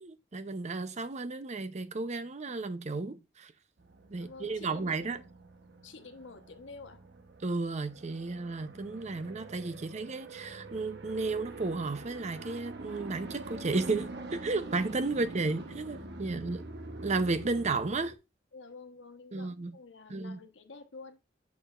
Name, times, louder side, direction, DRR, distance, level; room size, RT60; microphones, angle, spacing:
voice 1, 0.0-3.5 4.1-5.2 7.4-16.6 17.0-18.1 19.3-19.7 20.1-20.4, right 3 dB, 40° right, 0.6 m, -33 dB
sound 1, 3.8-18.2, right 2 dB, 65° right, 0.9 m, -45 dB
voice 2, 4.1-5.2 5.8-7.1 16.2-16.6 18.5-21.2, left 3 dB, 75° left, 1.0 m, -50 dB
7.2 x 6.6 x 2.4 m
head